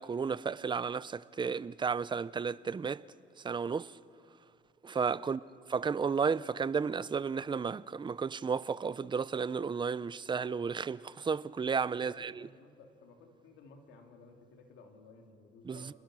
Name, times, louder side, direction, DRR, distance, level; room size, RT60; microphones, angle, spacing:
voice 1, 0.0-3.0 3.4-3.9 4.8-5.4 5.7-12.5 15.7-15.9, right 5 dB, 25° right, 0.5 m, -33 dB
voice 2, 11.9-15.9, left 4 dB, 90° left, 2.7 m, -56 dB
30.0 x 21.0 x 6.2 m
cardioid pair, 90°, 20 cm